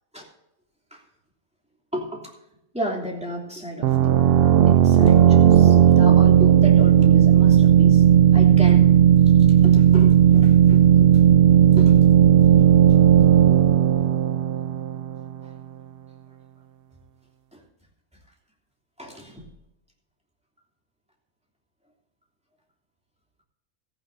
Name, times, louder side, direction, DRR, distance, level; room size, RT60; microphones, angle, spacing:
voice 1, 1.9-2.3 2.7-4.3 4.7-8.0 8.3-8.9 9.2-12.0 13.2-13.3 15.4-15.5 17.5-17.6 19.0-19.5, equal, 5° right, -3 dB, 3.1 m, -33 dB
sound 1, 3.8-15.3, right 10 dB, 75° right, 0.5 m, -15 dB
15.5 x 14.5 x 2.7 m, 0.86 s
omnidirectional pair, 1.5 m